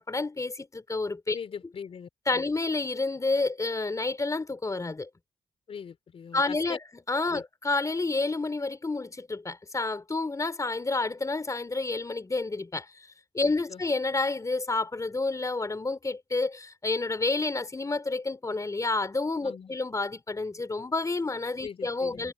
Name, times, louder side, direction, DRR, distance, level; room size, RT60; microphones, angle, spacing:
voice 1, 0.0-1.4 2.3-5.1 6.3-6.8 7.1-12.9 13.3-22.3, left 3 dB, 30° left, 3.4 m, -29 dB
voice 2, 1.3-2.4 5.7-6.8 7.3-7.4 13.4-13.8 19.4-19.8 21.6-22.3, left 6 dB, 65° left, 3.5 m, -41 dB
cardioid pair, 55°, 10 cm